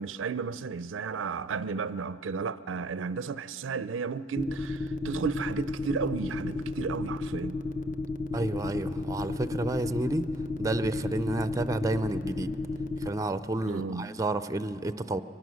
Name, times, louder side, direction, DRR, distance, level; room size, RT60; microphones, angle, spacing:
voice 1, 0.0-7.6 13.7-14.1, right 5 dB, 80° right, 0.5 m, -33 dB
sound 1, 4.4-13.1, left 3 dB, 40° left, 0.7 m, -32 dB
voice 2, 8.3-10.3 10.6-12.5 13.0-15.2, right 2 dB, 15° right, 0.4 m, -30 dB
23.5 x 20.5 x 6.4 m
head